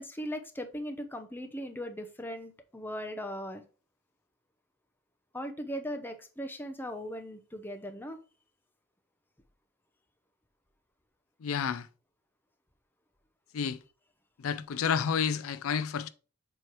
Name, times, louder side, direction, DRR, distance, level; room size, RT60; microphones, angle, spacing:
voice 1, 0.0-3.6 5.3-8.2, equal, 10° left, 0.7 m, -38 dB
voice 2, 11.4-11.9 13.5-13.8 14.4-16.1, left 7 dB, 75° left, 0.4 m, -30 dB
7.5 x 3.2 x 4.6 m
head